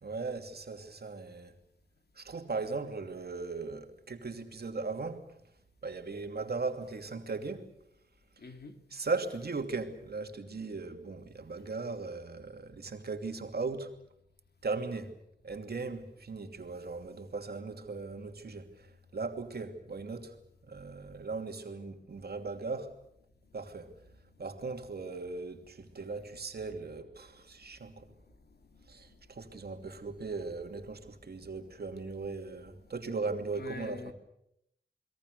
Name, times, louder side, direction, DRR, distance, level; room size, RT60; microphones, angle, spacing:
voice 1, 0.0-1.5 2.2-5.2 5.8-7.7 8.9-13.9 14.6-15.2 15.4-20.4 20.7-22.9 23.5-23.9 24.4-28.1 28.9-34.1, right 4 dB, 65° right, 5 dB, 2.8 m, -38 dB
voice 2, 8.4-8.8 24.3-24.4 27.7-29.2 31.1-31.2 33.5-34.1, left 3 dB, 65° left, 6 dB, 3.0 m, -48 dB
29.5 x 21.5 x 6.7 m, 0.75 s
wide cardioid pair, 85°, 18 cm